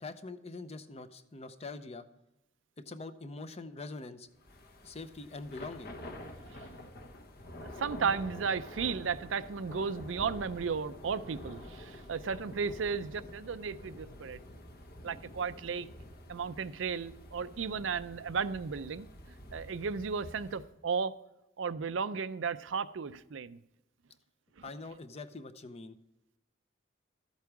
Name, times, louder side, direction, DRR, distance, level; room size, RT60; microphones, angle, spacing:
voice 1, 0.0-2.0 2.9-4.3 4.8-5.9 24.6-26.0, left 3 dB, 35° left, 0.7 m, -44 dB
Thunder / Rain, 4.4-20.7, left 1 dB, 55° left, 1.2 m, -48 dB
voice 2, 7.6-14.4 15.0-15.9 16.3-19.1 19.5-21.1 21.6-23.6, right 5 dB, 80° right, 0.5 m, -34 dB
13.0 x 8.3 x 4.7 m
head